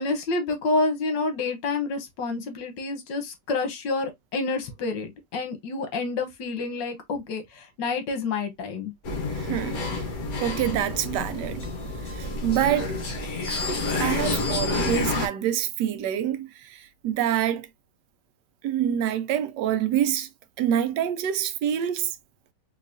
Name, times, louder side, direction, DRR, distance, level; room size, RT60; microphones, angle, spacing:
voice 1, 0.0-8.9, left 3 dB, 80° left, 1.6 m, -28 dB
sound 1, 9.0-15.3, left 3 dB, 60° left, 1.5 m, -29 dB
voice 2, 9.3-10.0 10.4-11.7 12.0-13.0 13.5-17.7 18.6-20.3 20.6-22.2, right 10 dB, 75° right, 1.2 m, -26 dB
3.9 x 2.9 x 2.5 m
omnidirectional pair, 1.9 m